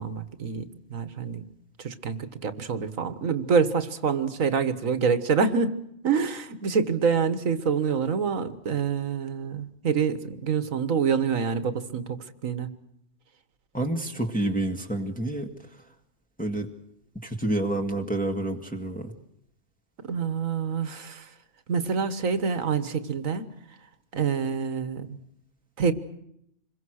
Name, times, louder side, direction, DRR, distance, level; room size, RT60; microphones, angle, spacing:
voice 1, 0.0-1.5 1.8-12.2 12.4-12.7 20.0-21.3 21.7-23.5 24.1-25.2 25.8-25.9, right 6 dB, 75° right, 12 dB, 1.8 m, -26 dB
voice 2, 13.7-15.7 16.4-16.7 17.2-19.1, right 1 dB, 5° left, 2 dB, 1.9 m, -28 dB
26.5 x 22.5 x 6.5 m, 0.75 s
omnidirectional pair, 1.4 m